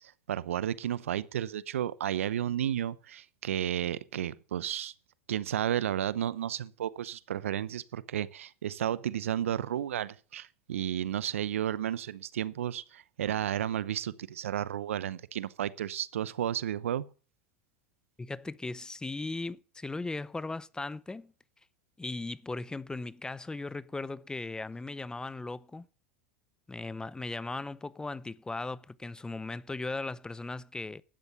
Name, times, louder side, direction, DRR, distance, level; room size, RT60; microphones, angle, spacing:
voice 1, 0.3-4.9 5.3-17.0, right 10 dB, 90° right, 0.7 m, -32 dB
voice 2, 18.2-21.3 22.0-25.9 26.7-31.0, left 3 dB, 10° left, 0.5 m, -37 dB
12.5 x 8.7 x 6.8 m
hypercardioid pair, 100°, 7 cm